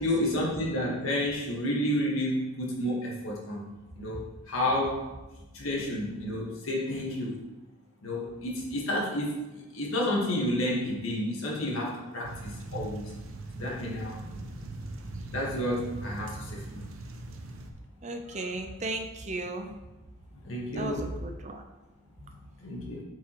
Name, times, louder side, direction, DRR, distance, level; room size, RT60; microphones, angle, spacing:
voice 1, 0.0-3.7 4.0-4.2 4.5-5.1 5.5-7.5 8.0-13.1 13.5-14.2 15.3-16.9 20.3-21.1 22.2-22.3 22.6-23.0, left 1 dB, 85° left, -3 dB, 1.5 m, -30 dB
sound 1, 12.2-17.7, right 2 dB, 80° right, 0.7 m, -40 dB
voice 2, 18.0-19.7 20.7-21.6, right 2 dB, 35° right, 4 dB, 0.6 m, -35 dB
8.0 x 4.8 x 3.0 m, 1.0 s
head